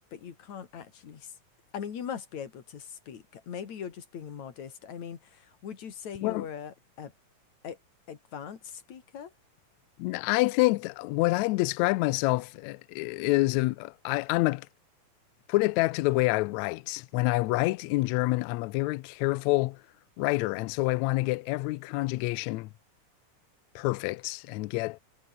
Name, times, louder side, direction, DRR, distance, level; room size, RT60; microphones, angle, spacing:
voice 1, 0.1-1.4 1.7-7.1 7.6-7.8 8.1-9.3, left 8 dB, 60° left, 3.7 m, -40 dB
voice 2, 10.0-14.7 15.5-19.8 20.2-22.7 23.7-25.0, left 21 dB, 90° left, 1.6 m, -27 dB
omnidirectional pair, 3.8 m